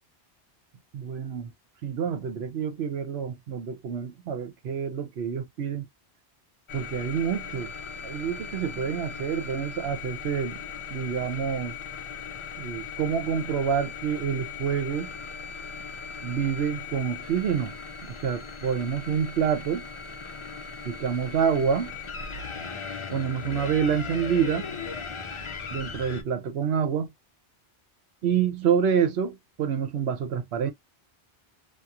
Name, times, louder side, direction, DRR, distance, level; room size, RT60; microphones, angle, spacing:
voice 1, 0.9-1.5 1.8-5.9 6.7-7.7 8.0-10.6 10.9-11.8 12.6-15.1 16.2-17.8 18.0-19.9 20.8-22.0 23.1-24.7 25.7-27.1 28.2-30.7, right 7 dB, 70° right, 0.9 m, -27 dB
sound 1, 6.7-26.2, left 5 dB, 50° left, 0.3 m, -38 dB
2.8 x 2.3 x 2.3 m
omnidirectional pair, 1.1 m